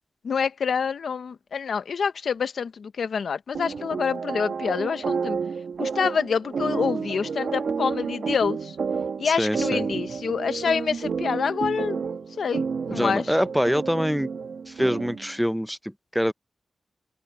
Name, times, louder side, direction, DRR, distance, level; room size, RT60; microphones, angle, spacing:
voice 1, 0.2-5.4 5.8-8.7 9.2-13.2, left 6 dB, 85° left, 0.9 m, -27 dB
sound 1, 3.5-15.3, right 5 dB, 85° right, 1.2 m, -30 dB
voice 2, 9.2-9.9 12.9-14.3 14.7-16.3, equal, ahead, 0.6 m, -25 dB
wide cardioid pair, 120°, 0 cm